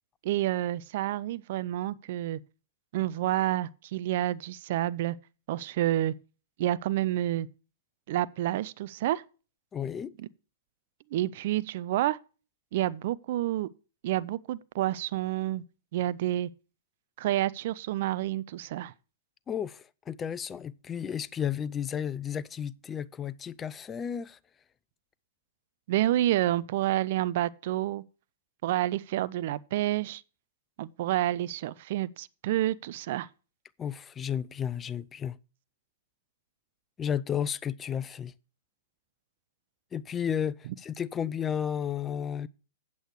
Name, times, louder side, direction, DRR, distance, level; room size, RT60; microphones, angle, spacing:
voice 1, 0.2-2.4 2.9-5.2 5.5-6.1 6.6-7.5 8.1-9.2 11.1-12.2 12.7-13.7 14.0-15.6 15.9-16.5 17.2-18.9 25.9-28.0 28.6-30.2 30.8-33.3, right 14 dB, 55° right, 0.5 m, -29 dB
voice 2, 9.7-10.1 19.5-24.4 33.8-35.4 37.0-38.3 39.9-42.5, left 8 dB, 20° left, 0.4 m, -33 dB
8.4 x 8.0 x 4.6 m
hypercardioid pair, 120°, 0 cm